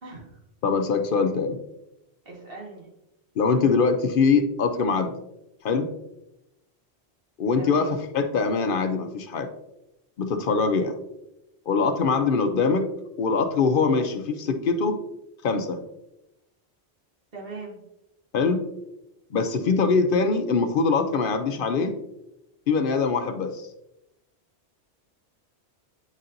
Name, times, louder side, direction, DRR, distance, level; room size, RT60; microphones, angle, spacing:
voice 1, 0.6-1.6 3.4-5.1 5.6-5.9 7.4-9.5 10.2-10.9 11.7-12.9 13.2-15.0 15.4-15.8 18.3-18.6 19.3-21.9 22.7-23.7, left 4 dB, 60° left, 7 dB, 0.7 m, -23 dB
voice 2, 2.2-2.9 7.6-7.9 17.3-17.8, right 3 dB, 60° right, -2 dB, 1.7 m, -39 dB
9.0 x 4.1 x 2.6 m, 0.89 s
omnidirectional pair, 1.1 m